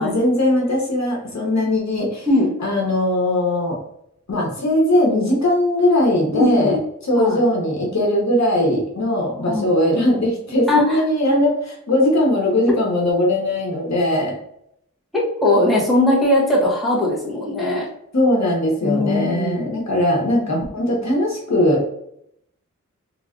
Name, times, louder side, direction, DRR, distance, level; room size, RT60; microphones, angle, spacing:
voice 1, 0.0-2.3 2.6-3.8 4.3-6.8 7.0-14.4 18.1-21.9, left 1 dB, 65° left, -2 dB, 1.0 m, -19 dB
voice 2, 6.3-6.8 7.2-7.4 9.5-9.7 10.7-11.0 15.1-17.9 18.8-19.7, left 1 dB, ahead, -7 dB, 1.4 m, -19 dB
3.3 x 3.1 x 2.5 m, 0.74 s
wide cardioid pair, 75°, 29 cm